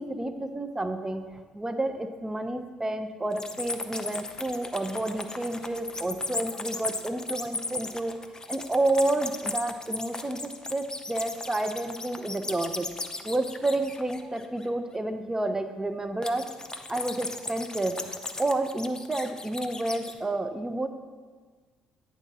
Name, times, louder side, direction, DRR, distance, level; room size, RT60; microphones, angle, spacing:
voice 1, 0.0-8.1 8.5-12.9 13.2-16.5 16.9-18.0 18.4-20.9, right 2 dB, 15° right, 8 dB, 0.6 m, -30 dB
sound 1, 3.3-14.6 16.2-20.2, left 3 dB, 20° left, 0.6 m, -36 dB
9.0 x 3.6 x 5.5 m, 1.5 s
figure-of-eight pair, 50°, 4 cm